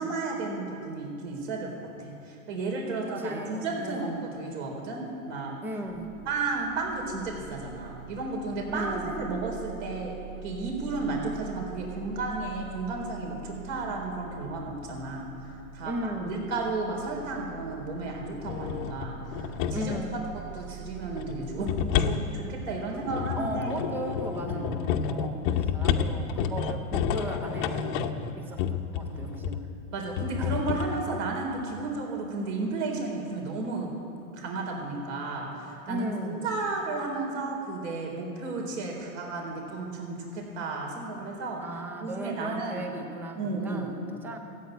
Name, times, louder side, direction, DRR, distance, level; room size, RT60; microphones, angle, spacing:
voice 1, 0.0-1.7 2.0-5.5 6.3-10.2 10.4-20.2 20.5-21.7 22.0-23.7 24.5-24.7 27.8-28.1 29.1-29.3 29.9-33.9 34.3-42.9 43.4-44.0, right 3 dB, 55° right, 0 dB, 4.0 m, -33 dB
voice 2, 3.1-4.2 5.6-6.3 8.7-9.3 15.8-16.5 19.7-20.4 23.3-28.0 28.4-29.7 30.4-30.5 35.9-36.6 41.6-44.4, right 1 dB, 5° right, 5 dB, 0.4 m, -37 dB
sound 1, 5.9-22.0, right 7 dB, 75° right, 4.3 m, -45 dB
sound 2, 18.5-20.1 21.2-29.7 30.2-31.0, left 7 dB, 35° left, 0.8 m, -30 dB
15.0 x 8.4 x 9.2 m, 2.6 s
hypercardioid pair, 135°, 44 cm